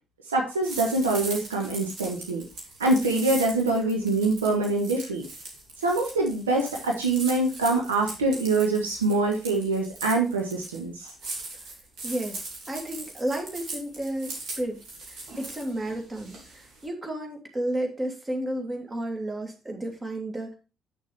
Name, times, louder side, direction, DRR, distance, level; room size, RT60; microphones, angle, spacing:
voice 1, 0.3-2.4 2.8-5.2 5.8-11.1, right 2 dB, 85° right, 0 dB, 1.2 m, -25 dB
sound 1, 0.6-16.8, right 2 dB, 60° right, 2.7 m, -40 dB
voice 2, 12.0-14.8 15.1-20.5, right 1 dB, 30° right, 2 dB, 2.7 m, -32 dB
8.3 x 6.5 x 3.4 m, 0.31 s
figure-of-eight pair, 45°, 0 cm